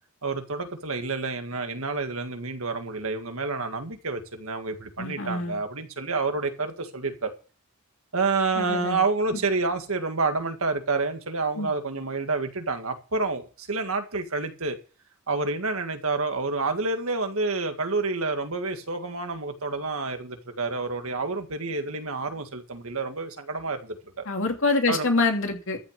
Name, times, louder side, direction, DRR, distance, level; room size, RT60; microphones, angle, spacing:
voice 1, 0.2-7.3 8.1-14.8 15.3-24.2 24.9-25.1, right 3 dB, 65° right, 1.9 m, -29 dB
voice 2, 5.0-5.6 8.5-9.0 11.6-11.7 24.3-25.8, left 3 dB, 60° left, 2.9 m, -25 dB
14.0 x 6.1 x 8.0 m
head